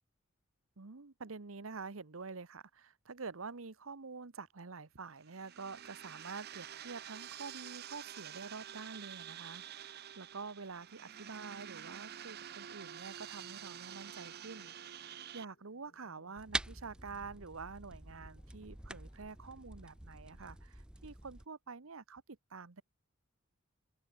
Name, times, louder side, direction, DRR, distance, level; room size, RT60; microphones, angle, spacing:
voice 1, 0.8-14.8 15.0-22.8, right 4 dB, 75° right, 1.0 m, -47 dB
sound 1, 5.2-15.4, right 10 dB, 50° right, 0.6 m, -49 dB
sound 2, 9.9-20.1, left 1 dB, 50° left, 7.0 m, -72 dB
sound 3, 16.4-21.4, right 1 dB, 5° right, 0.4 m, -45 dB
head